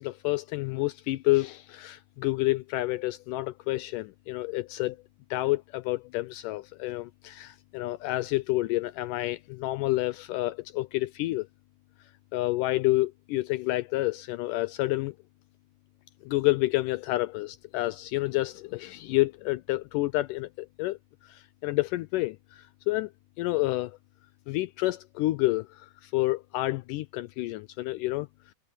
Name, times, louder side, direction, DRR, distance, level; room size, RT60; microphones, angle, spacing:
voice 1, 0.0-5.0 5.3-11.5 12.3-15.2 16.2-23.1 23.4-24.0 24.5-28.3, left 19 dB, 90° left, 1.8 m, -29 dB
omnidirectional pair, 4.3 m